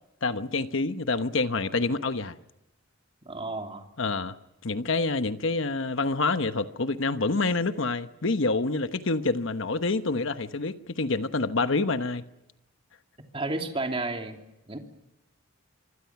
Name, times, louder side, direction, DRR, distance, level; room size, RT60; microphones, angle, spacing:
voice 1, 0.2-2.4 4.0-4.3 4.6-12.2, left 3 dB, 60° left, 1.1 m, -27 dB
voice 2, 3.2-3.9 13.3-14.4 14.7-14.8, right 2 dB, 25° right, 2.9 m, -31 dB
25.5 x 25.0 x 5.9 m
head